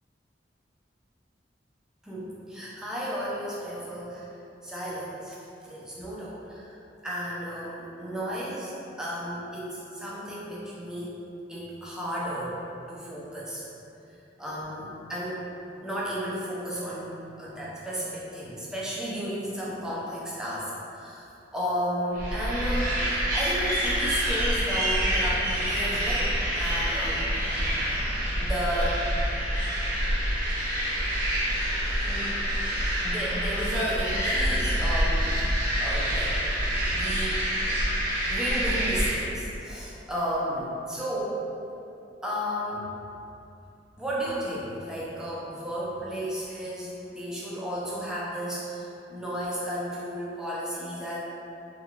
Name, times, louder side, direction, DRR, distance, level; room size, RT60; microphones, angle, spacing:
voice 1, 2.0-4.3 4.6-5.4 5.6-11.2 11.5-12.6 12.9-13.6 14.4-15.4 15.8-27.6 28.1-29.0 32.1-32.4 33.0-35.4 35.8-36.4 36.9-37.4 37.9-41.4 42.2-42.9 44.0-51.2, equal, 5° right, -7 dB, 0.4 m, -33 dB
sound 1, 22.1-39.1, equal, 50° right, 0.8 m, -27 dB
2.8 x 2.3 x 2.9 m, 2.8 s
head